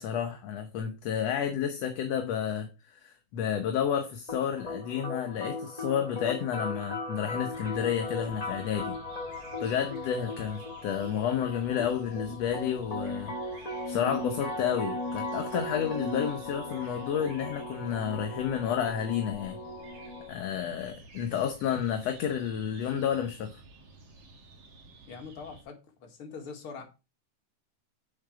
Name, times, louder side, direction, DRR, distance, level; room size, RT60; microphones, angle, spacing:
voice 1, 0.0-9.0 9.6-19.6 20.3-23.6, left 8 dB, 65° left, 1.8 m, -31 dB
sound 1, 4.3-20.3, left 2 dB, 20° left, 1.1 m, -37 dB
sound 2, 7.5-25.6, right 2 dB, 50° right, 2.7 m, -52 dB
voice 2, 25.1-25.7 26.0-26.8, left 5 dB, 45° left, 2.5 m, -42 dB
7.7 x 7.2 x 4.9 m
omnidirectional pair, 3.7 m